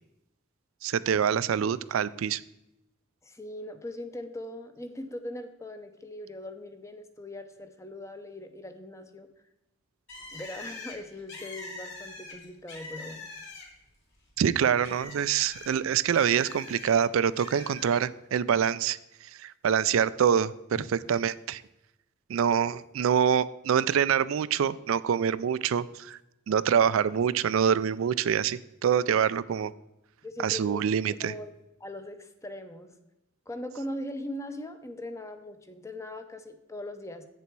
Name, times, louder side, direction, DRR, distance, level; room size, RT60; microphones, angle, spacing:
voice 1, 0.8-2.4 14.4-19.0 19.4-21.6 22.3-26.2 26.5-29.7 30.4-31.3, right 8 dB, 70° right, 17 dB, 0.3 m, -25 dB
voice 2, 3.2-9.3 10.3-13.3 26.5-26.6 30.2-32.9 33.5-37.3, left 1 dB, 15° left, 8 dB, 0.6 m, -40 dB
Bird, 10.1-13.9 14.3-16.9 17.4-18.0, left 3 dB, 60° left, 2.7 m, -44 dB
8.3 x 6.8 x 4.6 m, 0.89 s
head